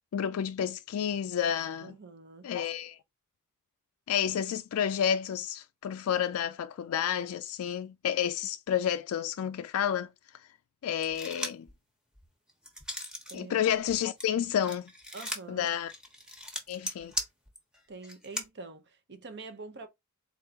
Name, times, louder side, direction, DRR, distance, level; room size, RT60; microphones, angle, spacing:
voice 1, 0.1-1.9 2.4-3.0 4.1-10.1 10.8-11.7 13.3-14.9 15.5-15.9 16.7-17.1, left 9 dB, 70° left, 0.3 m, -30 dB
voice 2, 1.8-2.5 13.3-13.6 15.1-15.7 17.9-19.9, right 3 dB, 50° right, 0.8 m, -45 dB
sound 1, 11.0-11.7 12.2-13.4 13.7-18.5, left 1 dB, 5° right, 1.0 m, -38 dB
4.1 x 3.6 x 2.8 m
head